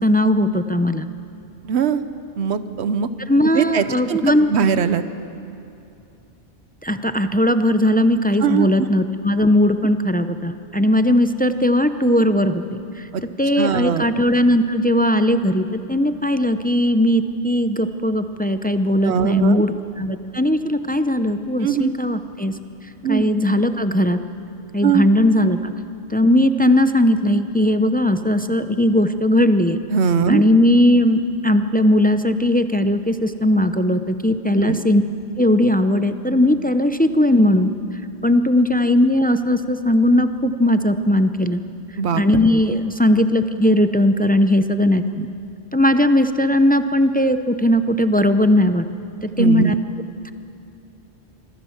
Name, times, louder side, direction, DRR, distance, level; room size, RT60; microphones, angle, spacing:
voice 1, 0.0-1.1 3.3-4.5 6.8-13.1 13.4-22.5 23.1-24.2 24.7-25.7 26.1-29.8 30.3-35.0 35.4-37.7 38.2-41.6 42.1-45.3 45.7-48.8 49.2-49.7 50.2-50.3, left 1 dB, 15° left, 10 dB, 0.3 m, -18 dB
voice 2, 1.6-2.0 2.4-3.1 3.5-4.2 4.5-5.0 8.4-8.9 13.1-13.2 13.6-14.1 19.0-19.6 21.6-21.9 23.0-23.2 24.8-25.1 29.9-30.4 34.6-34.8 42.0-42.2 49.4-49.7, right 7 dB, 80° right, 12 dB, 1.1 m, -20 dB
24.5 x 15.0 x 7.2 m, 2.7 s
omnidirectional pair, 1.1 m